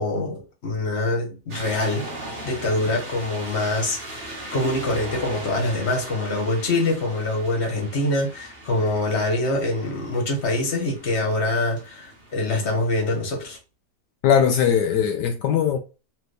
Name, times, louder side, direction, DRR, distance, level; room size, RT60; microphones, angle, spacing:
voice 1, 0.0-2.1 2.4-13.6, left 2 dB, 40° left, 1.5 m, -25 dB
sound 1, 1.5-13.6, right 1 dB, 35° right, 1.5 m, -39 dB
voice 2, 14.2-15.8, left 8 dB, 80° left, 1.2 m, -19 dB
4.1 x 3.3 x 3.3 m
omnidirectional pair, 1.8 m